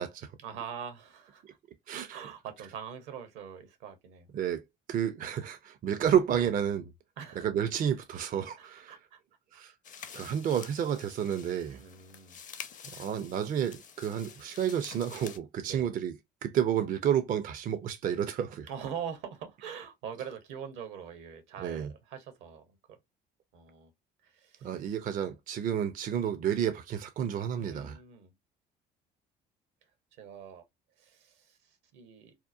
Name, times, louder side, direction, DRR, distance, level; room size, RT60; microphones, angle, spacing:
voice 1, 0.4-1.4 1.9-4.3 7.2-7.5 8.6-9.2 11.8-12.4 15.7-15.9 18.7-23.0 23.5-23.9 24.2-24.9 27.6-28.3 30.2-30.6 31.0-31.6 31.9-32.4, right 8 dB, 70° right, 0.8 m, -43 dB
voice 2, 1.9-2.2 4.3-4.6 4.9-6.9 7.4-8.9 9.5-9.7 10.1-11.8 13.0-16.1 16.4-18.7 21.6-21.9 24.6-28.0, right 9 dB, 45° right, 0.4 m, -30 dB
sound 1, 9.8-15.4, left 7 dB, 40° left, 0.5 m, -48 dB
2.8 x 2.0 x 2.4 m
hypercardioid pair, 60°, 21 cm